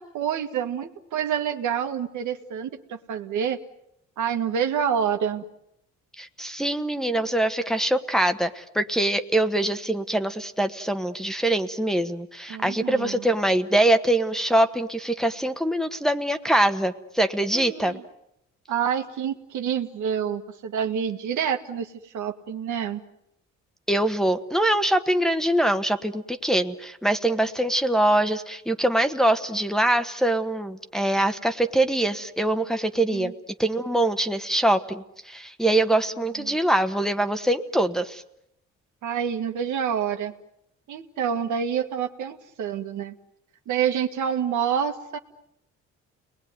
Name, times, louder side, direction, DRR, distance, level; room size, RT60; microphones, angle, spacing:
voice 1, 0.0-3.6 4.2-5.4 12.5-13.3 17.5-18.0 18.7-23.0 33.1-33.3 36.4-36.6 39.0-40.3 40.9-43.1 43.7-45.2, right 8 dB, 75° right, 6 dB, 2.0 m, -27 dB
voice 2, 6.2-18.0 23.9-33.3 33.6-38.2, right 1 dB, ahead, 6 dB, 1.4 m, -23 dB
30.0 x 20.5 x 9.5 m, 0.82 s
cardioid pair, 90°, 30 cm